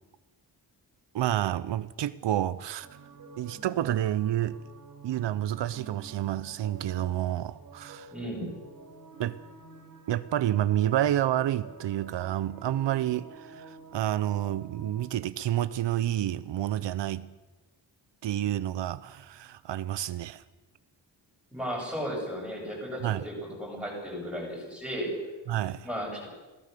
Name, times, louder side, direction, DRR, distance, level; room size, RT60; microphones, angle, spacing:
voice 1, 1.1-2.9 3.4-4.6 5.0-8.1 9.2-9.4 10.1-17.3 18.2-20.4 23.0-23.2 25.5-25.9, right 12 dB, 80° right, 15 dB, 0.7 m, -29 dB
sound 1, 2.8-15.1, right 4 dB, 45° right, 3.9 m, -49 dB
voice 2, 8.1-8.5 21.5-25.1 25.8-26.3, equal, 5° right, -2 dB, 7.3 m, -35 dB
26.0 x 17.0 x 6.7 m, 1.2 s
wide cardioid pair, 170°, 42 cm